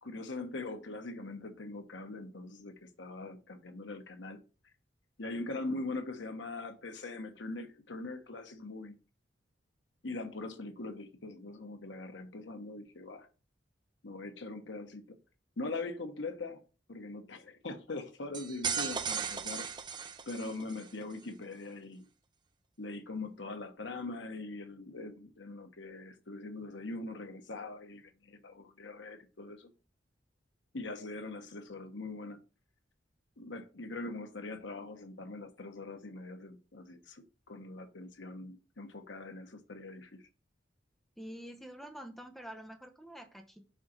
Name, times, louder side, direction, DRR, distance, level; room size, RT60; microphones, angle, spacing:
voice 1, 0.0-4.4 5.2-8.9 10.0-13.3 14.0-15.2 15.6-16.6 16.9-19.7 20.3-22.1 22.8-29.7 30.7-32.4 33.4-40.2, left 2 dB, 85° left, 1.1 m, -42 dB
sound 1, 18.3-20.9, right 6 dB, 25° right, 0.5 m, -36 dB
voice 2, 41.2-43.7, equal, ahead, 0.8 m, -47 dB
5.6 x 3.8 x 6.0 m
head